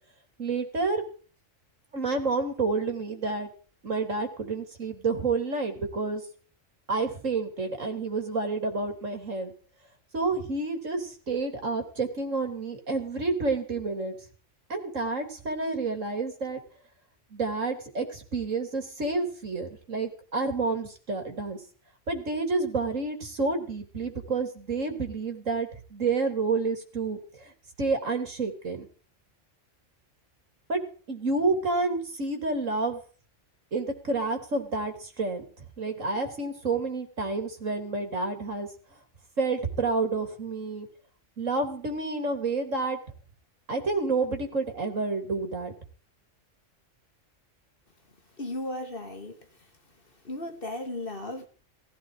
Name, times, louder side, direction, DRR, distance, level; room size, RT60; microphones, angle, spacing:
voice 1, 0.4-1.0 1.9-3.5 3.8-6.2 6.9-9.5 10.1-14.1 14.7-16.6 17.3-21.6 22.1-27.5 27.8-28.9 30.7-30.8 31.1-33.0 33.7-35.4 35.8-38.7 39.4-40.9 41.4-43.0 43.7-45.7, right 3 dB, 90° right, 3.4 m, -29 dB
voice 2, 48.4-49.5 50.2-51.5, left 1 dB, 45° left, 2.6 m, -35 dB
18.0 x 16.0 x 4.9 m
omnidirectional pair, 1.3 m